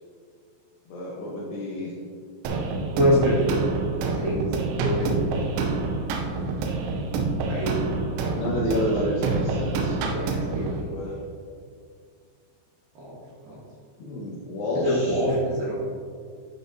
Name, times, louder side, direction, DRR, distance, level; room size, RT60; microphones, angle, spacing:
voice 1, 0.9-1.9 8.4-11.2 14.0-15.3, left 1 dB, 70° left, -5 dB, 2.6 m, -30 dB
sound 1, 2.5-10.8, right 3 dB, 80° right, 3.1 m, -27 dB
voice 2, 3.0-3.7 4.0-5.8 7.5-7.7 10.1-10.9 13.4-13.5 14.8-15.8, equal, 65° right, -8 dB, 2.5 m, -26 dB
12.5 x 5.6 x 2.8 m, 2.1 s
omnidirectional pair, 5.7 m